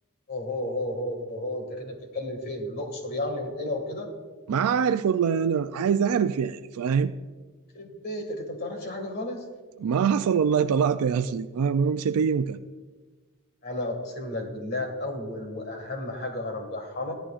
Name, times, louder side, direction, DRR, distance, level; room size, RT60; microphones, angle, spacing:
voice 1, 0.3-4.1 7.7-9.4 13.6-17.1, left 1 dB, 50° left, 4 dB, 1.9 m, -32 dB
voice 2, 4.5-7.1 9.8-12.6, right 7 dB, 80° right, 10 dB, 0.4 m, -24 dB
15.0 x 11.5 x 2.4 m, 1.3 s
head